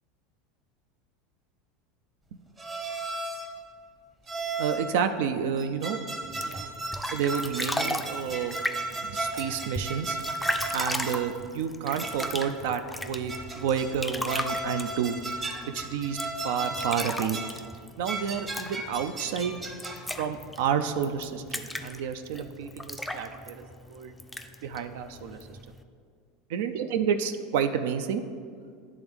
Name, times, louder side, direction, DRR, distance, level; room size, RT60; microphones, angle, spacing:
sound 1, 2.6-3.6 4.3-5.0 5.6-11.3 12.0-12.6 13.3-14.0 14.3-17.6 18.0-20.1, right 2 dB, 20° right, 0.8 m, -35 dB
voice 1, 4.6-6.0 6.4-6.7 7.1-8.6 9.1-10.2 10.7-15.2 15.7-16.2 16.4-17.4 18.0-19.6 20.2-21.4 21.8-24.1 24.6-25.6 26.5-28.2, right 7 dB, 75° right, 8 dB, 0.3 m, -30 dB
sound 2, 6.2-25.8, left 1 dB, 5° left, 0.4 m, -37 dB
10.0 x 3.5 x 3.4 m, 2.1 s
supercardioid pair, 120°, 0 cm